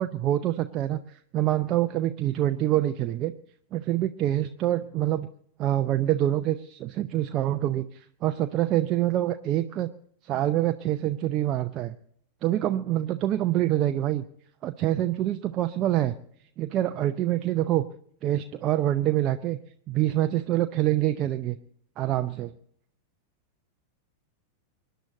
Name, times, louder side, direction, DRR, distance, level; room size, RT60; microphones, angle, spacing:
voice 1, 0.0-3.3 3.7-5.3 5.6-9.9 10.2-11.9 12.4-14.3 14.6-16.2 16.6-17.8 18.2-19.6 19.9-21.6 22.0-22.5, right 13 dB, 35° right, 8 dB, 0.7 m, -26 dB
25.0 x 10.5 x 4.1 m, 0.67 s
figure-of-eight pair, 90°, 0 cm